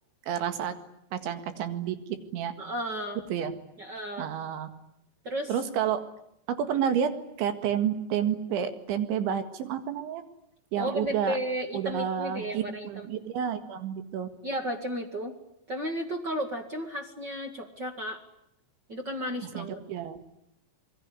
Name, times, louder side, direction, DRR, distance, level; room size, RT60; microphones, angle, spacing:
voice 1, 0.3-0.7 1.1-2.0 2.3-2.5 3.3-3.5 4.2-4.7 5.5-6.0 6.5-7.1 7.4-10.2 10.7-11.4 11.7-14.3 19.6-20.2, right 8 dB, 80° right, 9 dB, 4.2 m, -30 dB
voice 2, 2.6-3.2 3.8-4.3 5.2-5.5 10.7-13.1 14.4-15.3 15.7-18.2 18.9-19.8, equal, 50° right, 5 dB, 1.3 m, -33 dB
26.5 x 21.5 x 9.7 m, 0.78 s
omnidirectional pair, 5.4 m